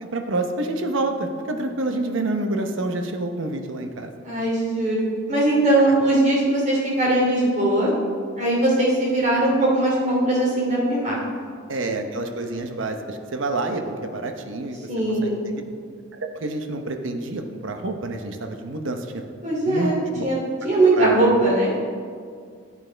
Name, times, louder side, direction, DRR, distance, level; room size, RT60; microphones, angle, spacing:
voice 1, 0.0-4.1 11.7-14.8 15.2-15.6 16.1-19.2 19.7-20.2 21.0-21.4, right 2 dB, 80° right, 5 dB, 0.8 m, -28 dB
voice 2, 4.2-7.9 8.4-11.2 14.9-15.4 19.4-20.4 20.6-21.8, right 1 dB, 40° right, -4 dB, 2.7 m, -20 dB
13.0 x 8.7 x 3.3 m, 2.1 s
head